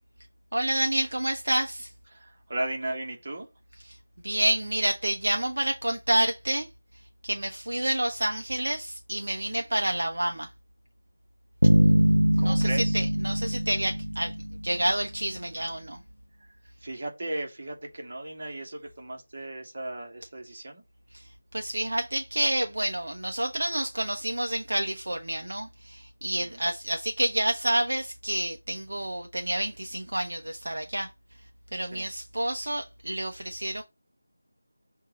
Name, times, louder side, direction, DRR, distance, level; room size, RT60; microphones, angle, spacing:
voice 1, 0.5-1.9 3.8-4.0 4.2-10.5 12.3-14.3 14.6-16.0 21.1-31.1 31.7-33.8, right 1 dB, 60° right, 0.9 m, -29 dB
voice 2, 2.1-3.5 12.4-13.0 16.8-20.8 26.4-26.6 31.8-32.0, right 1 dB, 35° right, 1.8 m, -36 dB
sound 1, 11.6-15.0, equal, 85° right, 0.4 m, -23 dB
6.4 x 2.8 x 5.3 m
figure-of-eight pair, 165°, 0 cm